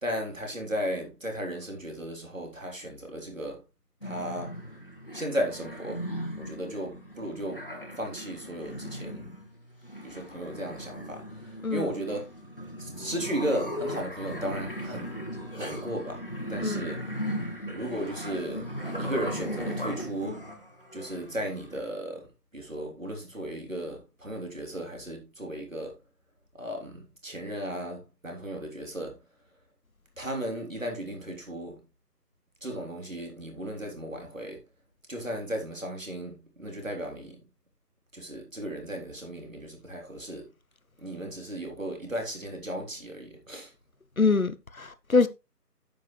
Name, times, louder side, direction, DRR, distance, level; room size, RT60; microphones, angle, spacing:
voice 1, 0.0-3.6 4.0-4.6 5.1-6.0 6.4-7.6 8.0-9.3 10.0-12.2 12.8-15.1 15.6-16.2 16.5-17.0 17.7-18.7 19.0-20.4 20.9-22.3 22.5-25.9 26.6-29.2 30.2-31.7 32.6-34.6 35.1-37.4 38.1-40.5 41.0-43.7, right 1 dB, 50° right, 3.4 m, -35 dB
sound 1, 4.0-21.8, equal, 35° left, 1.5 m, -37 dB
voice 2, 44.2-45.3, left 4 dB, 55° left, 0.9 m, -24 dB
9.4 x 8.0 x 3.2 m
figure-of-eight pair, 175°, 49 cm